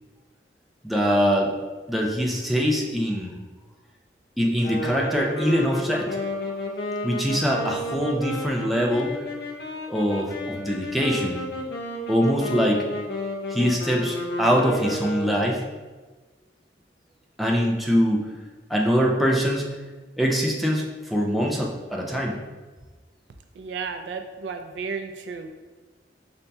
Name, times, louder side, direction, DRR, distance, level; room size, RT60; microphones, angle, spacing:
voice 1, 0.8-1.5 1.9-3.3 4.4-6.1 7.0-9.1 9.9-11.4 12.1-12.9 13.5-15.6 17.4-18.3 18.7-19.7 20.2-22.4, equal, ahead, -2 dB, 0.4 m, -23 dB
sound 1, 4.6-15.6, left 1 dB, 65° left, 0.6 m, -32 dB
voice 2, 23.5-25.5, right 5 dB, 80° right, 7 dB, 0.3 m, -33 dB
5.2 x 2.7 x 2.2 m, 1.3 s
head